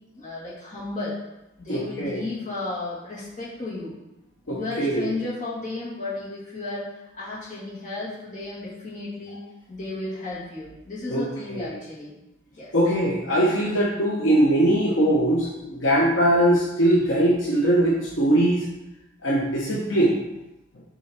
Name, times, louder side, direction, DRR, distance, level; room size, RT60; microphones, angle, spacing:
voice 1, 0.2-1.2 1.6-3.9 4.4-9.4 9.7-12.2 12.5-12.7, left 2 dB, 40° left, -7 dB, 2.3 m, -33 dB
voice 2, 1.7-2.2 4.5-5.1 11.1-11.8 12.7-18.7 19.2-20.2, right 1 dB, 80° left, -3 dB, 1.0 m, -21 dB
6.9 x 3.8 x 4.4 m, 0.96 s
head